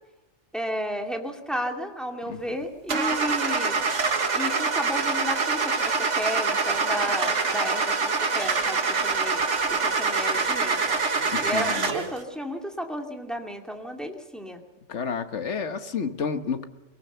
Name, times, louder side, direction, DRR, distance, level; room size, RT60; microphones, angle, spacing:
voice 1, 0.5-3.8 4.3-9.4 9.7-11.0 11.4-14.6, equal, ahead, 3 dB, 2.3 m, -33 dB
Car / Engine starting, 2.9-12.2, right 4 dB, 75° right, 2.0 m, -25 dB
voice 2, 11.3-11.9 14.9-16.6, left 6 dB, 70° left, 9 dB, 1.6 m, -30 dB
23.0 x 19.0 x 6.9 m, 1.2 s
omnidirectional pair, 1.3 m